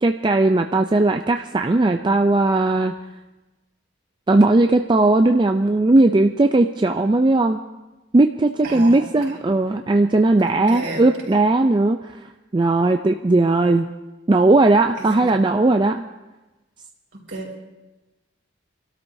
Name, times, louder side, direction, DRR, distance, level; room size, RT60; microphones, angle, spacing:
voice 1, 0.0-2.9 4.3-7.6 8.1-12.0 12.5-13.9 14.3-16.0, right 2 dB, 25° right, 6 dB, 0.4 m, -17 dB
voice 2, 8.6-9.4 10.5-11.4 15.0-15.4 17.1-17.6, right 2 dB, 60° right, -3 dB, 4.6 m, -33 dB
27.5 x 12.5 x 2.7 m, 1.1 s
head